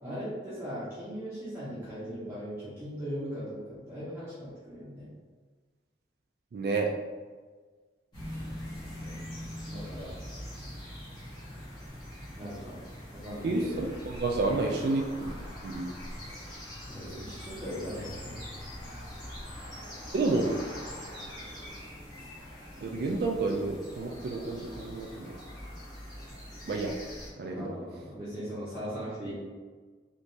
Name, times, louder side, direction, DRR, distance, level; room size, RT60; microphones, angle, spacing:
voice 1, 0.0-5.1 9.0-9.2 9.7-10.1 12.4-12.8 13.1-13.8 16.9-19.0 27.5-29.3, equal, 15° right, -11 dB, 0.7 m, -39 dB
voice 2, 6.5-6.9 13.4-15.3 15.6-15.9 20.1-20.5 22.8-25.3 26.6-26.9 27.4-27.7, right 3 dB, 60° right, 1 dB, 0.3 m, -30 dB
sound 1, 8.1-27.3, equal, 25° left, 1.2 m, -43 dB
3.2 x 3.0 x 2.7 m, 1.4 s
head